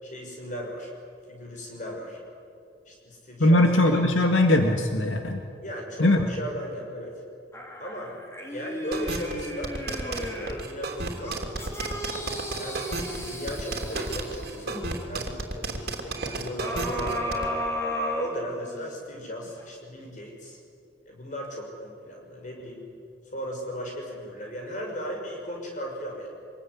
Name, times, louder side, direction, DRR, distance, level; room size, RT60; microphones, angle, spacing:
voice 1, 0.0-0.9 1.3-2.2 2.9-3.6 5.6-7.1 7.8-8.2 8.5-9.8 10.0-11.9 12.6-12.8 13.3-17.4 18.0-20.6 21.1-22.8 23.3-26.3, equal, 40° left, 1 dB, 6.2 m, -37 dB
voice 2, 3.4-5.4 6.0-6.2, left 1 dB, 85° left, 4 dB, 2.0 m, -20 dB
sound 1, 7.5-10.7 11.2-14.9 16.6-18.9 19.4-19.5, equal, 15° left, 3.0 m, -34 dB
sound 2, 8.9-17.5, right 2 dB, 55° right, 3.2 m, -32 dB
26.0 x 21.5 x 9.9 m, 2.4 s
head